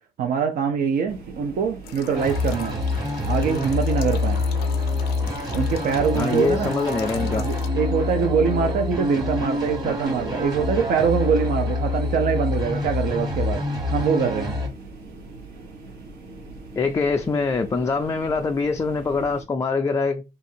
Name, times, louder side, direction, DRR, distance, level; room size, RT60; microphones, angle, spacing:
voice 1, 0.2-2.7 3.2-4.4 5.5-6.7 7.2-13.6 13.9-14.6, right 6 dB, 60° right, 0.6 m, -24 dB
sound 1, 1.1-19.4, right 3 dB, 75° right, 1.1 m, -42 dB
sound 2, 1.8-7.7, left 9 dB, 75° left, 0.6 m, -41 dB
sound 3, 2.1-14.7, left 3 dB, 25° right, 1.3 m, -26 dB
voice 2, 6.1-7.5 16.8-20.2, left 4 dB, 20° left, 0.3 m, -24 dB
2.8 x 2.5 x 4.2 m
cardioid pair, 110°, 17 cm